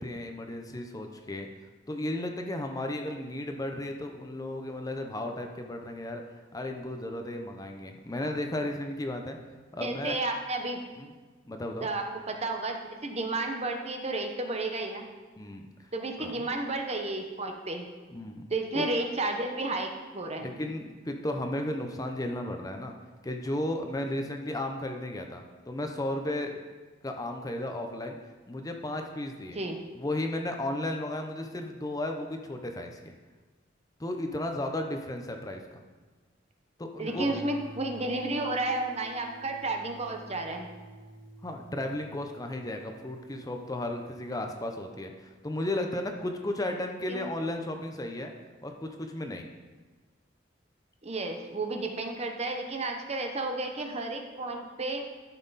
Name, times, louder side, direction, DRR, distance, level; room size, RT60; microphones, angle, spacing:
voice 1, 0.0-1.5 1.9-6.2 6.5-9.4 9.7-10.2 11.0-11.1 11.5-11.9 15.4-15.7 16.2-16.5 18.1-18.5 18.7-18.9 20.4-22.9 23.2-26.6 27.0-28.2 28.5-29.6 30.0-33.1 34.0-35.8 36.8-37.4 41.4-48.3 48.6-49.5, left 1 dB, 20° left, 4 dB, 0.7 m, -34 dB
voice 2, 9.8-10.8 11.8-15.1 15.9-17.9 18.5-20.5 29.5-29.8 37.0-40.7 47.1-47.3 51.0-55.1, right 2 dB, 35° right, 3 dB, 0.9 m, -32 dB
Guitar, 37.1-43.8, right 1 dB, 85° left, 1.5 m, -49 dB
13.0 x 5.9 x 4.1 m, 1.4 s
head